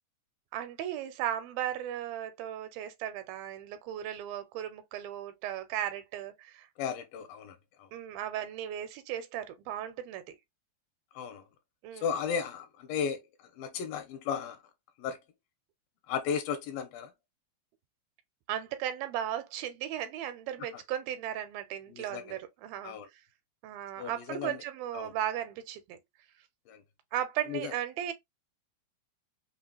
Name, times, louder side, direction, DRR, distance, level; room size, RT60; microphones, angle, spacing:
voice 1, 0.5-6.7 7.9-10.4 11.8-12.1 18.5-23.2 23.6-26.0 27.1-28.1, right 11 dB, 90° right, 2.6 m, -36 dB
voice 2, 6.8-7.9 11.2-11.4 12.0-13.2 13.5-14.6 15.0-15.2 16.1-17.1 20.7-20.8 21.9-22.4 22.8-23.1 24.0-24.6 24.9-25.1 26.7-26.8 27.5-27.7, left 7 dB, 85° left, 2.6 m, -35 dB
5.9 x 2.0 x 2.9 m
omnidirectional pair, 4.1 m